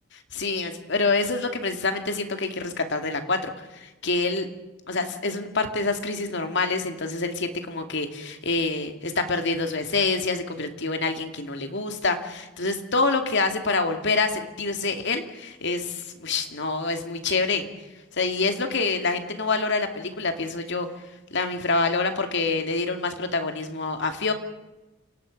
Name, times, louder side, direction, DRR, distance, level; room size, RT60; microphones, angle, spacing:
voice 1, 0.3-4.5 4.9-17.7 18.1-20.9 21.3-24.3, left 3 dB, 60° left, 6 dB, 2.3 m, -26 dB
29.5 x 18.0 x 5.3 m, 1.0 s
head